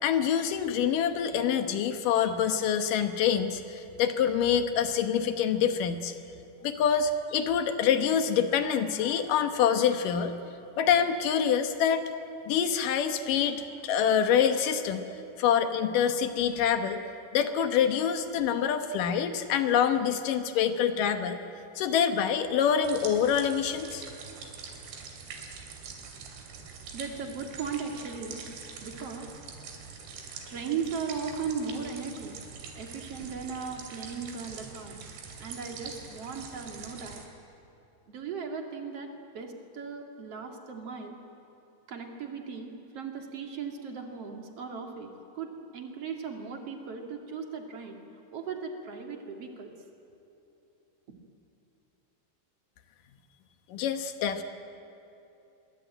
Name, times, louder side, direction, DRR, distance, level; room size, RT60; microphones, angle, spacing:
voice 1, 0.0-6.1 6.6-10.3 10.8-12.0 12.5-15.0 15.4-17.0 17.3-21.4 21.8-24.0 53.7-54.4, left 8 dB, 65° left, 8 dB, 2.4 m, -26 dB
sound 1, 22.8-37.3, right 5 dB, 85° right, 4.9 m, -44 dB
voice 2, 26.9-28.4 28.8-29.3 30.5-32.4 32.7-35.0 35.4-37.2 38.1-41.2 41.9-48.0 48.3-49.7 51.1-51.2, right 5 dB, 45° right, 3 dB, 2.6 m, -37 dB
25.5 x 22.0 x 9.0 m, 2.9 s
omnidirectional pair, 4.8 m